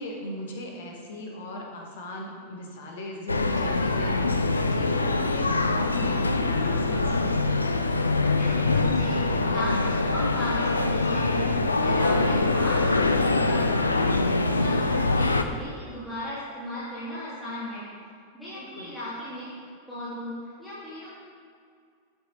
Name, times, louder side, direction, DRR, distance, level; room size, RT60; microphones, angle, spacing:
voice 1, 0.0-7.4 18.5-18.9, left 1 dB, 60° left, 1 dB, 1.7 m, -38 dB
sound 1, 3.3-15.4, left 3 dB, 80° left, 0.5 m, -24 dB
voice 2, 8.3-14.2 14.6-17.9 18.3-19.5 19.9-21.1, left 1 dB, 5° left, -11 dB, 2.6 m, -36 dB
12.5 x 7.4 x 3.4 m, 2.2 s
figure-of-eight pair, 90°, 0 cm